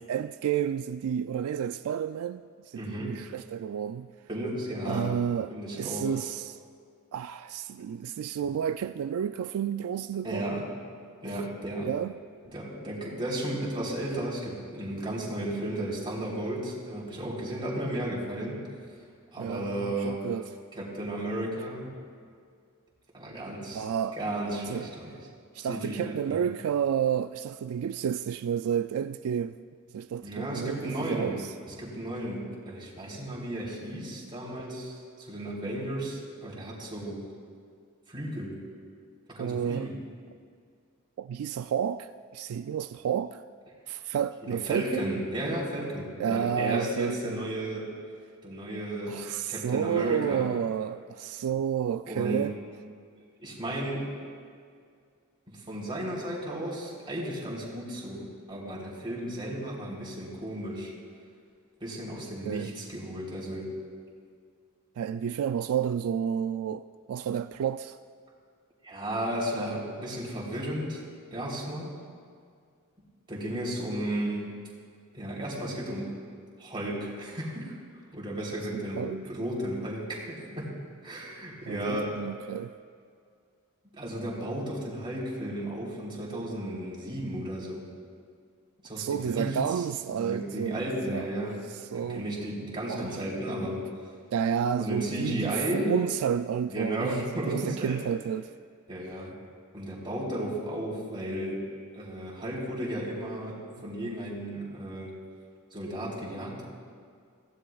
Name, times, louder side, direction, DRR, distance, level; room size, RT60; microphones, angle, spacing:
voice 1, 0.1-4.1 4.9-6.6 7.1-10.5 11.3-11.4 11.8-12.1 19.4-20.5 23.7-24.2 24.5-24.9 25.5-29.6 29.9-31.5 39.4-39.9 41.2-43.4 43.9-45.1 46.2-47.4 49.1-52.5 62.4-62.7 65.0-68.0 78.7-79.2 81.7-82.7 89.0-90.8 91.1-91.3 91.7-92.2 92.8-93.2 94.3-98.5, right 8 dB, 75° right, 0.3 m, -31 dB
voice 2, 2.8-3.2 4.3-5.1 5.5-6.1 10.2-10.6 11.2-11.9 12.5-18.6 19.3-20.2 20.7-21.9 23.1-23.8 24.2-25.1 25.7-26.4 30.2-31.3 31.6-37.2 38.1-38.6 39.3-39.9 44.4-47.9 48.4-49.1 49.5-50.5 52.1-52.5 53.4-54.1 55.5-60.9 61.8-63.7 68.8-71.0 71.3-71.9 73.3-74.5 75.1-76.1 76.6-77.7 78.1-80.7 81.0-82.1 83.9-87.8 88.8-89.5 90.2-91.5 91.9-93.8 94.8-95.9 96.6-98.0 98.9-99.3 99.7-101.6 101.9-105.1 105.7-106.7, right 1 dB, 25° right, 3.4 m, -34 dB
23.0 x 16.0 x 2.4 m
head